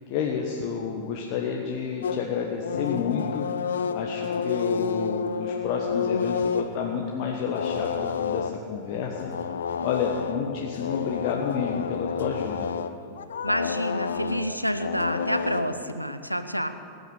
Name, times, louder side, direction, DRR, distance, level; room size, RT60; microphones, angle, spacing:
voice 1, 0.1-9.3 9.8-12.7, left 6 dB, 45° left, 1 dB, 1.3 m, -30 dB
sound 1, 2.0-16.2, left 6 dB, 65° left, 0.6 m, -30 dB
voice 2, 13.4-16.7, equal, 90° right, 10 dB, 0.8 m, -28 dB
20.0 x 9.4 x 6.5 m, 2.3 s
figure-of-eight pair, 90°, 0 cm